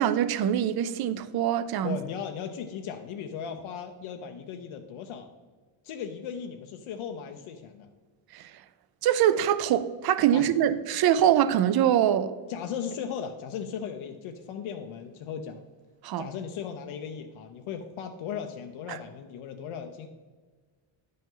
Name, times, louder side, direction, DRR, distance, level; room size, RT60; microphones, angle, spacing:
voice 1, 0.0-2.0 8.3-8.5 9.0-12.3 16.0-16.3 18.9-19.0, right 10 dB, 50° right, 0.5 m, -24 dB
voice 2, 1.8-5.3 5.8-7.9 10.3-10.5 12.5-15.6 16.2-20.1, left 7 dB, 75° left, 0.7 m, -37 dB
10.0 x 5.4 x 3.8 m
cardioid pair, 175°, 49 cm